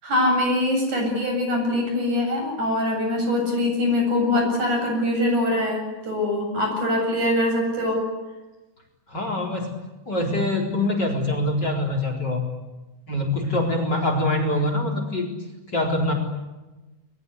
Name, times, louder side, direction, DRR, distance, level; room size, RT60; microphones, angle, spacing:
voice 1, 0.0-8.0, left 1 dB, 40° right, 3 dB, 9.3 m, -23 dB
voice 2, 9.1-9.7 10.1-12.4 13.1-15.3 15.7-16.1, left 1 dB, 25° left, 5 dB, 4.2 m, -24 dB
29.5 x 22.0 x 8.5 m, 1.1 s
omnidirectional pair, 5.5 m